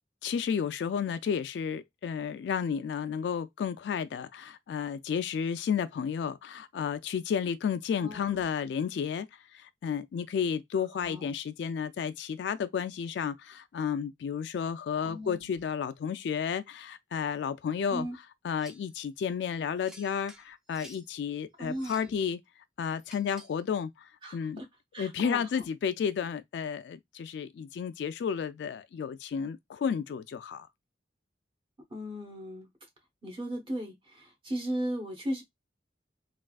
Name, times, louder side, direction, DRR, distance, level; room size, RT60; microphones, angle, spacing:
voice 1, 0.2-9.3 9.5-18.1 18.4-22.4 22.8-24.6 25.0-30.7, left 7 dB, 70° left, 0.3 m, -32 dB
voice 2, 8.0-8.4 10.9-11.3 15.0-15.6 17.9-18.1 21.6-22.2 24.2-24.7 24.9-25.4 31.9-32.7 33.2-35.4, equal, 30° right, 1.0 m, -36 dB
sound 1, 18.6-18.9 19.9-21.1 21.7-22.2 23.0-23.6, equal, 5° right, 0.5 m, -52 dB
3.4 x 2.3 x 2.3 m
head